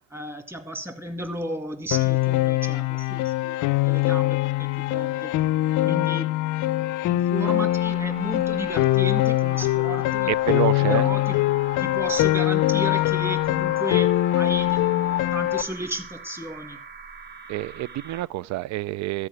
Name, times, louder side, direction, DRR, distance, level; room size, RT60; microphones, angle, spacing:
voice 1, 0.1-5.3 5.8-6.3 6.8-10.3 10.8-16.8, right 1 dB, 10° right, 2.0 m, -34 dB
Piano, 1.9-15.6, left 16 dB, 70° left, 0.5 m, -23 dB
sound 1, 7.3-18.2, right 3 dB, 35° right, 1.4 m, -43 dB
voice 2, 10.3-11.1 17.5-19.3, right 15 dB, 60° right, 0.4 m, -27 dB
13.0 x 4.9 x 8.6 m
cardioid pair, 105°, 31 cm